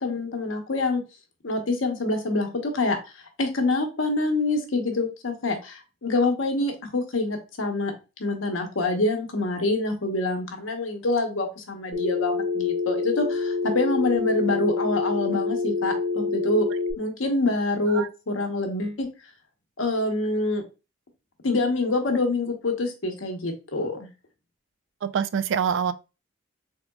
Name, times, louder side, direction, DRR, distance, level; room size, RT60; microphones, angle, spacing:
voice 1, 0.0-1.0 1.4-7.9 8.2-16.7 17.0-19.1 19.8-20.6 21.4-24.1, left 2 dB, 80° left, 0.9 m, -26 dB
Telephone, 11.9-16.9, left 3 dB, 85° right, 1.4 m, -27 dB
voice 2, 25.0-25.9, right 7 dB, 65° right, 0.3 m, -25 dB
3.7 x 3.4 x 2.3 m
head